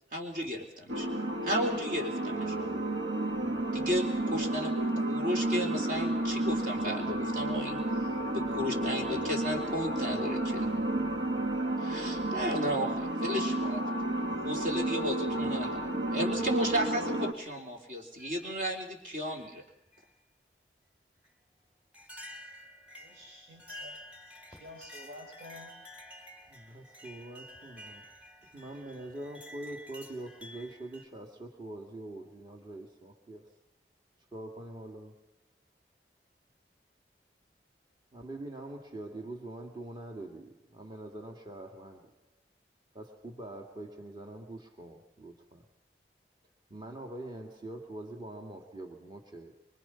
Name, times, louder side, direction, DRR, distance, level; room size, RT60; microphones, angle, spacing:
voice 1, 0.1-1.1 1.4-2.7 3.7-7.8 8.3-10.7 11.8-13.8 14.3-15.8 16.1-19.6, equal, 45° right, 3 dB, 4.0 m, -34 dB
sound 1, 0.9-17.3, right 1 dB, 90° right, 1.5 m, -32 dB
sound 2, 12.2-12.9 14.1-14.2 15.2-15.5 16.1-16.3 16.9-17.0 18.2-18.9 19.3-20.1 21.2-21.3 21.9-31.1, left 1 dB, 5° right, 3.2 m, -50 dB
voice 2, 23.0-23.9 24.6-25.7, left 1 dB, 65° right, -5 dB, 6.7 m, -49 dB
voice 3, 26.5-28.1 28.5-33.5 34.3-35.2 38.1-42.2 42.9-45.6 46.7-49.6, right 1 dB, 25° right, 3 dB, 2.1 m, -44 dB
25.0 x 24.0 x 5.8 m, 0.78 s
head